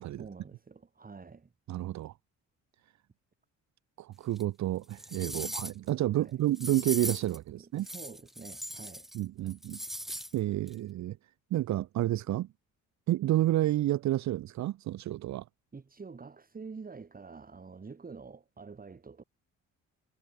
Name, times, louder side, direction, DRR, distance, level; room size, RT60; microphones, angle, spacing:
voice 1, 0.2-1.5 6.2-6.4 7.6-9.1 15.7-19.2, right 4 dB, 30° right, 2.6 m, -47 dB
voice 2, 1.7-2.1 4.0-7.9 9.1-9.8 10.3-11.2 11.5-12.5 13.1-15.4, right 14 dB, 65° right, 0.7 m, -30 dB
sound 1, 4.4-4.5 4.9-5.9 6.5-7.4 7.8-9.2 9.5-10.3 10.7-10.8, equal, ahead, 0.8 m, -39 dB
cardioid pair, 90°, 30 cm